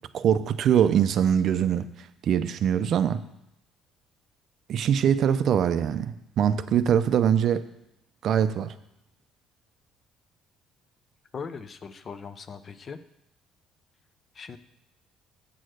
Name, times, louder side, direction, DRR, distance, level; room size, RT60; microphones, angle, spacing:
voice 1, 0.1-1.9 2.2-3.3 4.7-7.7 8.2-8.7, right 9 dB, 50° right, 12 dB, 0.4 m, -23 dB
voice 2, 11.3-13.0 14.4-14.6, left 5 dB, 30° left, 11 dB, 0.5 m, -39 dB
7.6 x 6.5 x 6.2 m, 0.83 s
cardioid pair, 150°, 0 cm